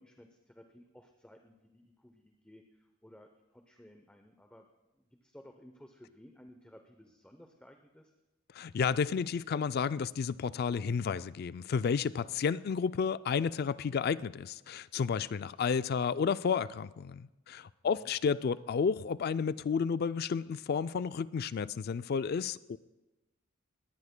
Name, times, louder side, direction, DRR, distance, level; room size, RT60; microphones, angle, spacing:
voice 1, 0.0-4.7 5.0-8.1 17.8-18.1, equal, 5° left, 0.7 m, -57 dB
voice 2, 8.6-22.8, left 6 dB, 50° left, 0.3 m, -31 dB
20.5 x 18.0 x 2.2 m
head